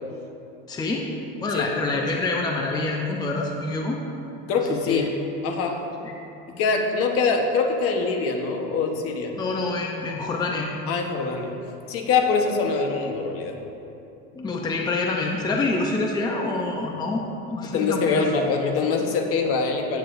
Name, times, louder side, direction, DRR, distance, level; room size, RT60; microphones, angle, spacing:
voice 1, 0.7-1.1 1.4-4.0 4.7-5.1 6.0-6.1 9.4-10.7 14.3-17.2 17.5-18.3, left 3 dB, 15° left, 0 dB, 0.6 m, -26 dB
voice 2, 4.5-5.1 5.4-5.8 6.5-9.4 10.9-11.5 11.9-13.6 17.7-20.0, left 4 dB, 50° left, 3 dB, 1.1 m, -24 dB
17.0 x 6.9 x 2.6 m, 2.8 s
cardioid pair, 140°, 31 cm